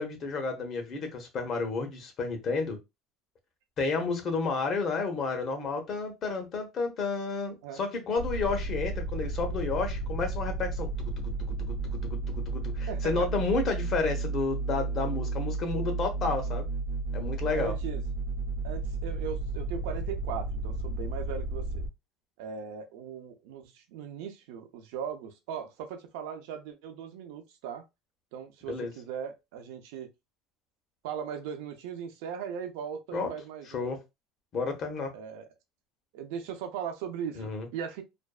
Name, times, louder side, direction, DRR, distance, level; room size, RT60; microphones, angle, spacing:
voice 1, 0.0-2.8 3.8-16.6 17.1-17.7 28.7-28.9 33.1-33.3 33.7-34.0 34.5-35.1 37.3-37.7, left 4 dB, 40° left, 0.8 m, -31 dB
sound 1, 8.2-21.9, right 3 dB, 55° right, 0.8 m, -33 dB
voice 2, 12.9-13.3 17.5-18.0 18.6-21.8 22.4-27.8 28.3-30.1 31.0-34.0 35.1-35.5 36.1-38.0, right 8 dB, 90° right, 0.6 m, -38 dB
2.5 x 2.3 x 2.3 m
cardioid pair, 135°, 0 cm